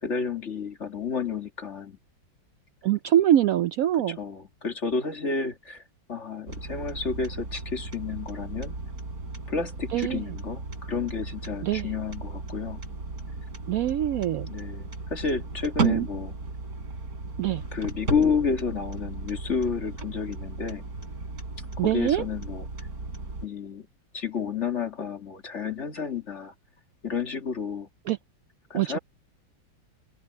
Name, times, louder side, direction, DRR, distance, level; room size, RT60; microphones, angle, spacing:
voice 1, 0.0-2.0 4.2-5.8 6.1-8.8 9.5-12.8 14.5-16.3 17.7-20.8 21.8-22.7 23.4-23.9 24.1-26.5 27.0-27.9 28.7-29.0, left 5 dB, 35° left, 2.2 m, -30 dB
voice 2, 2.8-4.2 9.9-10.2 11.6-11.9 13.7-14.5 15.8-16.1 17.4-17.6 21.8-22.2 28.1-28.2 28.7-29.0, right 12 dB, 90° right, 0.7 m, -23 dB
sound 1, 6.5-23.5, right 2 dB, 50° right, 5.0 m, -36 dB
omnidirectional pair, 2.1 m